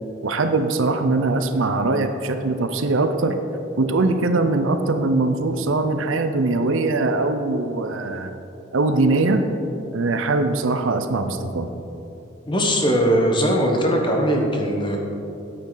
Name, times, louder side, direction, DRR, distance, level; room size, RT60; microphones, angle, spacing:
voice 1, 0.2-3.4 3.8-8.3 8.7-9.4 9.9-11.7, right 3 dB, 75° right, 7 dB, 0.6 m, -21 dB
voice 2, 12.5-15.0, equal, 25° left, 1 dB, 1.0 m, -20 dB
9.1 x 8.6 x 3.9 m, 2.9 s
head